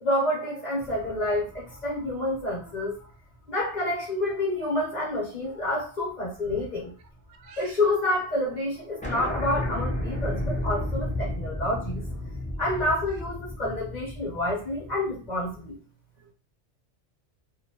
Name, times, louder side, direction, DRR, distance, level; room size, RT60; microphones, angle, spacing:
voice 1, 0.0-3.0 3.5-6.9 7.6-12.2 12.6-15.8, left 1 dB, 40° left, -5 dB, 1.0 m, -28 dB
sound 1, 0.8-3.4 3.9-4.0 5.5-5.8 6.1-7.5 7.8-7.9 8.1-8.2 8.5-8.6 9.0-15.7, left 1 dB, 10° left, 0.5 m, -33 dB
voice 2, 7.4-7.8 16.2-16.3, right 3 dB, 70° right, 6 dB, 0.8 m, -45 dB
2.7 x 2.2 x 2.8 m, 0.39 s
omnidirectional pair, 1.2 m